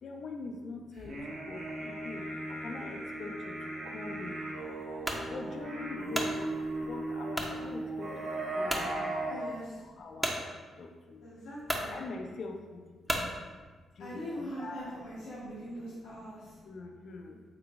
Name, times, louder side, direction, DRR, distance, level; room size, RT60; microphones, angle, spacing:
voice 1, 0.0-4.4 5.2-6.5 6.8-9.5 10.0-10.3 10.8-11.3 11.7-13.5 14.0-15.0 16.3-17.4, left 3 dB, 65° left, 3 dB, 0.4 m, -44 dB
sound 1, 1.0-9.4, right 2 dB, 55° right, 1.0 m, -37 dB
sound 2, 5.0-5.3 5.8-6.4 7.3-7.6 8.1-8.2 8.7-8.9 10.2-10.4 11.2-11.3 11.6-11.9 13.1-13.3, equal, 10° right, 0.6 m, -32 dB
voice 2, 9.3-9.8 11.2-12.0 14.0-16.6, equal, 85° left, -10 dB, 0.9 m, -42 dB
3.8 x 3.2 x 2.4 m, 1.4 s
supercardioid pair, 50°, 0 cm